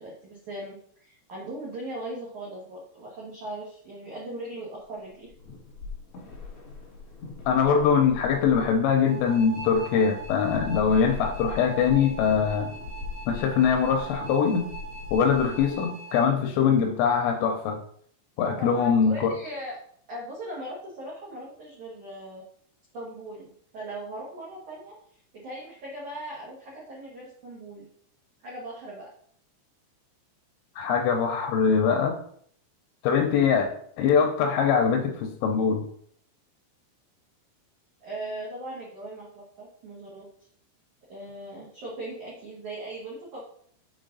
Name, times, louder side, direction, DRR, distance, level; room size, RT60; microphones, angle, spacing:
voice 1, 0.0-5.3 18.6-19.7 20.1-22.4 22.9-24.9 25.3-27.9 28.4-29.1 38.0-40.3 41.1-43.4, right 1 dB, 80° right, -5 dB, 1.7 m, -39 dB
sound 1, 5.2-15.8, left 4 dB, 60° left, 1.9 m, -41 dB
voice 2, 7.5-12.7 13.3-14.7 15.1-17.8 18.4-19.3 30.8-32.1 33.0-33.7 34.0-35.8, left 6 dB, 80° left, 4 dB, 3.0 m, -22 dB
sound 2, 9.1-16.3, right 5 dB, 50° right, 3.1 m, -42 dB
7.2 x 4.7 x 3.9 m, 0.62 s
omnidirectional pair, 5.9 m